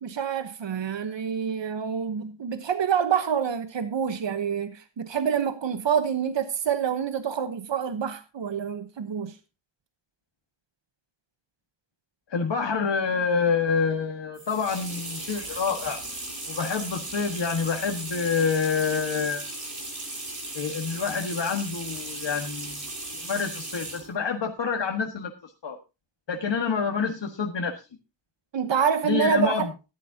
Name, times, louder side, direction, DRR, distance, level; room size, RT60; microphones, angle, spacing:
voice 1, 0.0-9.4 28.5-29.7, right 7 dB, 80° right, 1.1 m, -27 dB
voice 2, 12.3-16.0 16.5-19.4 20.5-22.8 23.1-25.3 25.6-25.8 26.3-27.8 29.0-29.7, left 5 dB, 75° left, 1.7 m, -27 dB
sound 1, 14.3-24.1, right 2 dB, 40° right, 6.9 m, -36 dB
14.0 x 11.5 x 2.8 m
wide cardioid pair, 100°, 44 cm